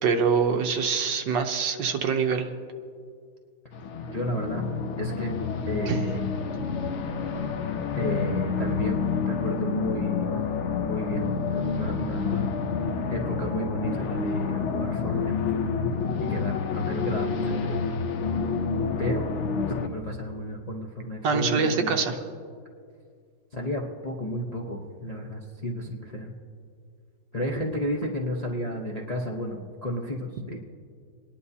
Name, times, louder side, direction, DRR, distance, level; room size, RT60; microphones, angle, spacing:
voice 1, 0.0-2.5 5.9-6.0 21.2-22.1, right 5 dB, 70° right, 5 dB, 1.5 m, -24 dB
sound 1, 3.7-19.9, left 5 dB, 90° left, 0.6 m, -28 dB
voice 2, 4.0-4.6 5.0-5.3 5.7-6.2 7.9-10.4 10.8-12.5 13.1-15.4 16.2-17.8 19.0-19.2 19.8-22.0 23.5-26.3 27.3-30.6, equal, 35° left, -1 dB, 0.6 m, -32 dB
28.0 x 10.5 x 2.8 m, 2.2 s
omnidirectional pair, 2.1 m